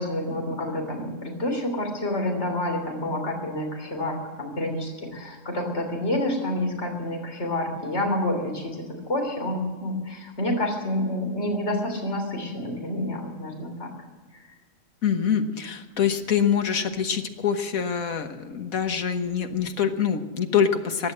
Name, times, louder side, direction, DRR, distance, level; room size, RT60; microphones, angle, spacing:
voice 1, 0.0-13.9 14.3-14.4, left 1 dB, 55° left, 2 dB, 3.7 m, -28 dB
voice 2, 15.0-21.1, left 7 dB, 85° left, 7 dB, 1.7 m, -25 dB
16.5 x 10.5 x 7.6 m, 1.4 s
omnidirectional pair, 1.4 m